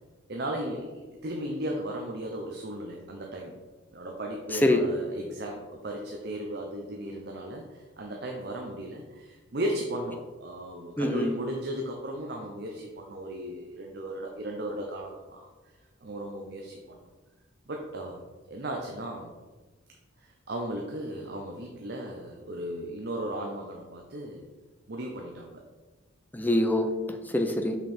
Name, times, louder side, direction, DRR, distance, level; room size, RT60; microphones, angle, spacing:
voice 1, 0.3-3.6 3.9-15.5 16.0-17.0 17.7-18.2 18.5-19.3 20.2-24.5 24.9-25.6, right 1 dB, 55° right, 1 dB, 0.7 m, -36 dB
voice 2, 11.0-11.3 26.3-27.8, left 1 dB, 10° left, 5 dB, 0.6 m, -25 dB
6.1 x 5.4 x 4.3 m, 1.3 s
head